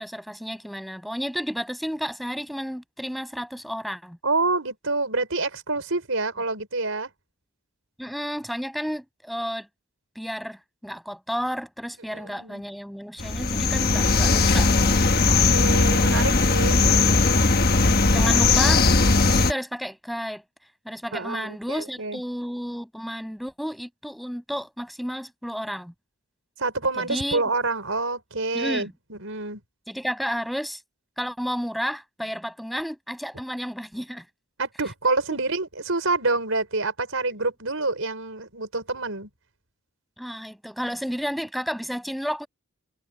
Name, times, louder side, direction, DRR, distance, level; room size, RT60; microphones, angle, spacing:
voice 1, 0.0-4.2 8.0-9.7 10.1-15.0 16.1-16.2 18.1-18.9 19.2-20.4 20.8-25.9 27.0-27.4 28.5-28.9 29.9-30.8 31.2-34.2 40.2-42.5, equal, ahead, 6.2 m, -32 dB
voice 2, 4.2-7.1 12.1-12.6 15.3-17.2 21.1-22.2 26.6-29.6 34.6-39.3, right 3 dB, 65° right, 5.4 m, -27 dB
sound 1, 13.2-19.5, left 3 dB, 45° left, 1.3 m, -19 dB
head